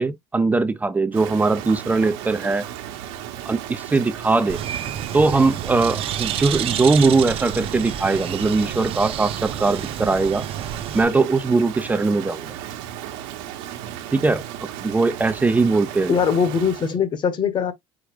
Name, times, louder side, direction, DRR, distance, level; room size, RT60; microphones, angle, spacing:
voice 1, 0.0-2.6 3.5-4.6 5.1-10.5 10.9-12.5 14.1-16.2, right 3 dB, 10° right, 0.4 m, -20 dB
Rain, 1.1-17.0, right 11 dB, 75° right, 1.1 m, -35 dB
Bird, 4.5-11.0, right 10 dB, 45° right, 0.7 m, -30 dB
voice 2, 16.1-17.7, left 6 dB, 35° left, 1.0 m, -21 dB
5.0 x 2.2 x 4.8 m
cardioid pair, 130°, 14 cm